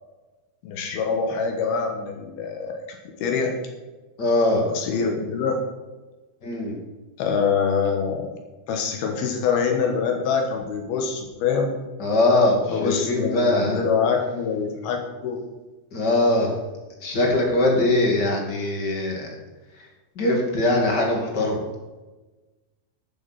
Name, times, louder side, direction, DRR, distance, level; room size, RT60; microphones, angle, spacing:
voice 1, 0.6-2.8 3.2-3.6 4.7-5.6 7.2-8.3 8.7-11.7 12.7-15.4, left 5 dB, 85° left, 3 dB, 3.3 m, -25 dB
voice 2, 4.2-4.6 6.4-6.8 12.0-13.8 15.9-16.6 17.0-19.3 19.8-19.9 20.2-21.6, left 2 dB, 30° left, 0 dB, 2.5 m, -21 dB
12.5 x 7.4 x 6.0 m, 1.2 s
omnidirectional pair, 4.3 m